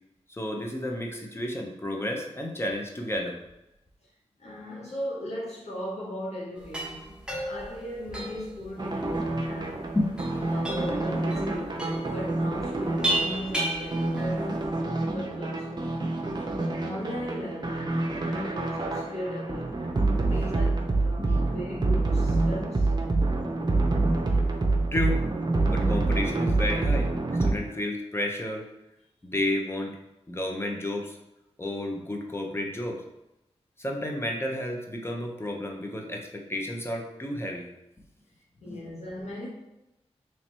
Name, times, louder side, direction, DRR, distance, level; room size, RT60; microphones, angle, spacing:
voice 1, 0.3-3.4 9.9-10.6 20.2-20.3 21.2-21.4 23.7-23.8 24.9-25.2 25.7-27.1 27.4-28.6 29.2-30.0 30.3-31.2 31.6-33.0 33.8-37.7 38.7-38.8, left 1 dB, 20° left, 0.8 m, -31 dB
voice 2, 4.4-9.9 10.4-16.1 16.8-20.0 20.3-22.9 38.6-39.5, equal, 75° left, 0.9 m, -38 dB
sound 1, 6.6-14.7, right 1 dB, 10° right, 0.8 m, -34 dB
sound 2, 8.8-27.5, right 2 dB, 40° right, 0.6 m, -27 dB
3.2 x 2.9 x 4.4 m
wide cardioid pair, 60°, 11 cm